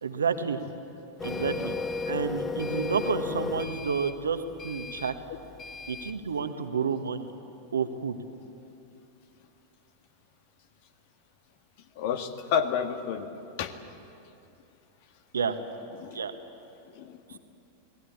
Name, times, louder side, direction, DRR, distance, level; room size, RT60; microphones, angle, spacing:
voice 1, 0.0-0.6 1.2-1.7 2.0-5.1 5.9-7.3 7.7-8.2 15.3-15.6 16.1-16.3 17.3-17.4, right 6 dB, 70° right, 8 dB, 1.5 m, -30 dB
Printer, 1.2-6.2, left 4 dB, 20° left, 1.2 m, -35 dB
voice 2, 12.0-13.3 13.6-13.7 15.9-16.3 16.9-17.4, left 8 dB, 50° left, 8 dB, 1.7 m, -30 dB
28.0 x 19.5 x 8.7 m, 2.7 s
figure-of-eight pair, 90°, 0 cm